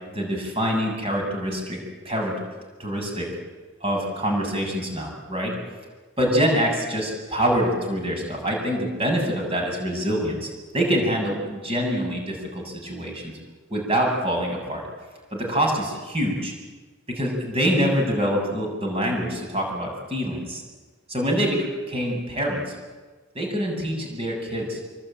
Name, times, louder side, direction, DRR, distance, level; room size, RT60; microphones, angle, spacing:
voice 1, 0.1-1.8 2.0-2.4 2.8-3.3 3.8-5.6 6.2-13.3 13.7-14.8 15.3-16.5 17.1-20.6 21.1-22.7 23.3-24.8, equal, 25° right, 1 dB, 7.2 m, -25 dB
25.5 x 23.0 x 9.1 m, 1.3 s
head